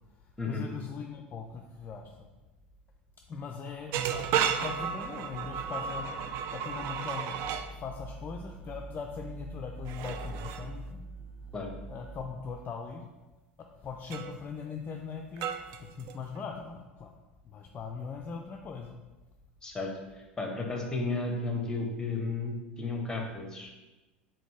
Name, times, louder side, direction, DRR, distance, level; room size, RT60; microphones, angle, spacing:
voice 1, 0.5-2.3 3.3-7.3 7.7-11.0 11.9-13.0 13.8-17.1 17.4-18.9, left 5 dB, 35° left, 3 dB, 0.4 m, -40 dB
sound 1, 3.9-7.7 9.9-10.7 14.1-14.4 15.4-16.4, right 8 dB, 50° right, 0.4 m, -33 dB
sound 2, 4.0-12.5, right 1 dB, 35° right, 1.2 m, -46 dB
voice 2, 20.1-23.7, left 3 dB, 10° left, 1 dB, 1.0 m, -33 dB
4.1 x 3.8 x 3.3 m, 1.1 s
hypercardioid pair, 80°, 6 cm